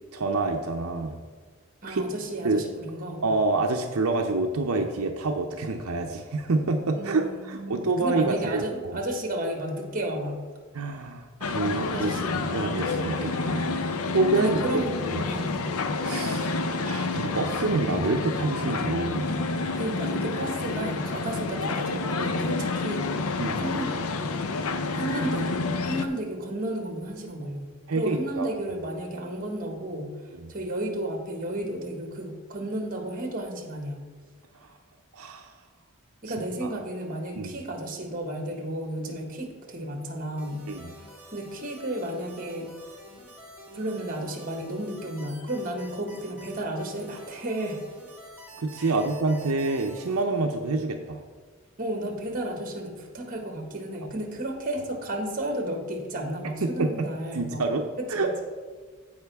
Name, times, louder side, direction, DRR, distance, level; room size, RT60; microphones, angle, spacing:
voice 1, 0.1-1.2 1.9-2.0 2.4-2.6 3.2-9.0 10.7-13.7 14.1-14.6 15.1-15.2 16.0-16.6 16.8-19.3 23.4-23.6 27.9-28.5 30.3-30.5 35.1-35.5 36.6-36.7 37.4-37.5 40.7-40.9 48.6-51.2 56.6-56.9 57.3-57.8 58.1-58.3, right 3 dB, 80° right, 3 dB, 0.6 m, -27 dB
voice 2, 1.8-3.2 6.9-10.4 11.9-12.5 14.4-15.0 15.3-15.5 19.7-23.1 23.5-23.9 24.9-30.1 30.5-34.0 36.2-40.6 41.0-42.7 43.7-47.8 48.8-48.9 51.8-57.6 58.1-58.3, right 1 dB, 40° right, 3 dB, 1.5 m, -33 dB
sound 1, 11.4-26.1, left 3 dB, 90° left, 0.7 m, -29 dB
sound 2, 40.4-50.2, right 1 dB, 10° right, 1.9 m, -48 dB
15.0 x 5.1 x 3.5 m, 1.5 s
head